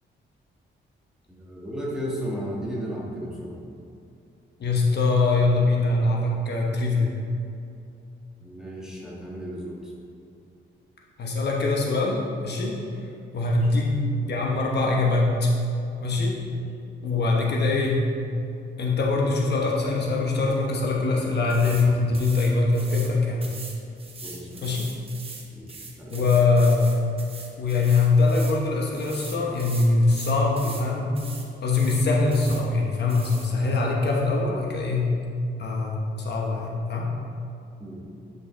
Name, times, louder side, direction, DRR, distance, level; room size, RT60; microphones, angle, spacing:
voice 1, 1.3-3.6 8.4-9.9 13.7-13.8 16.5-16.6 24.2-24.8 25.5-26.3 37.8-38.0, equal, 5° right, -5 dB, 1.5 m, -35 dB
voice 2, 4.6-7.1 11.2-12.8 13.3-13.9 14.3-15.5 16.0-16.4 17.0-18.1 18.8-23.5 24.6-24.9 26.1-27.0 27.6-31.1 31.6-35.1 35.6-37.1, left 3 dB, 55° left, -2 dB, 1.0 m, -23 dB
sound 1, 21.5-21.9 22.1-23.1 23.4-28.6 28.9-30.9 31.2-31.5 31.7-32.6 33.1-33.5, right 3 dB, 30° right, 0.9 m, -41 dB
9.9 x 5.5 x 3.3 m, 2.6 s
wide cardioid pair, 135°, 20 cm